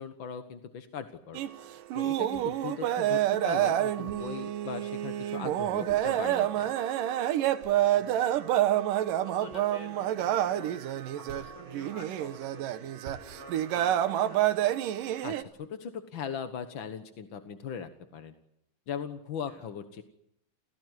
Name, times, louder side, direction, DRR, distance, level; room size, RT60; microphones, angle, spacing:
voice 1, 0.0-1.4 1.9-6.7 15.2-18.3 18.9-20.0, left 7 dB, 55° left, 8 dB, 1.4 m, -39 dB
sound 1, 1.3-15.4, right 12 dB, 80° right, 2.8 m, -28 dB
voice 2, 7.8-8.8 9.2-12.9 13.2-14.6 19.5-19.7, left 1 dB, 25° left, 7 dB, 5.7 m, -49 dB
29.5 x 17.0 x 9.6 m, 0.79 s
omnidirectional pair, 3.8 m